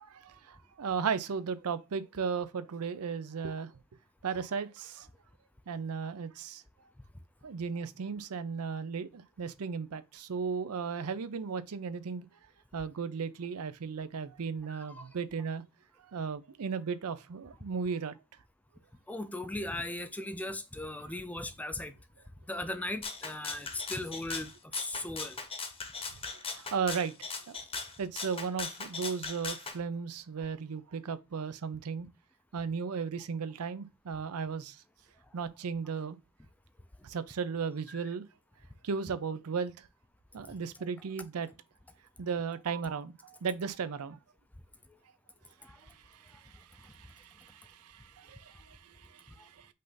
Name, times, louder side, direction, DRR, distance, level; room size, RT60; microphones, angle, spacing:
voice 1, 0.0-3.7 4.2-5.1 5.7-6.6 7.4-12.3 12.7-15.6 16.1-18.1 26.5-27.1 27.5-27.6 28.0-32.1 32.5-34.8 35.3-36.2 37.0-38.3 38.8-39.8 40.3-41.5 42.2-44.2 46.3-49.7, right 5 dB, 80° right, 0.5 m, -36 dB
voice 2, 14.7-15.0 19.1-22.0 22.5-25.4 37.9-38.0 45.6-45.7, left 1 dB, 5° left, 0.3 m, -38 dB
Rattle (instrument), 23.0-29.8, left 4 dB, 25° left, 0.8 m, -39 dB
5.5 x 2.5 x 3.8 m
head